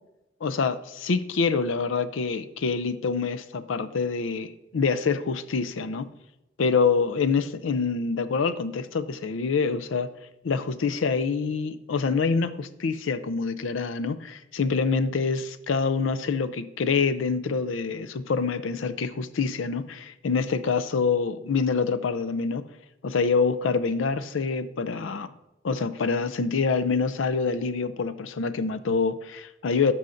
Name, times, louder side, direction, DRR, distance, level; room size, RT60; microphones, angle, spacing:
voice 1, 0.4-6.1 6.6-10.1 10.4-22.7 23.0-25.3 25.6-29.9, left 5 dB, 80° left, 0.5 m, -26 dB
11.0 x 6.3 x 2.6 m
head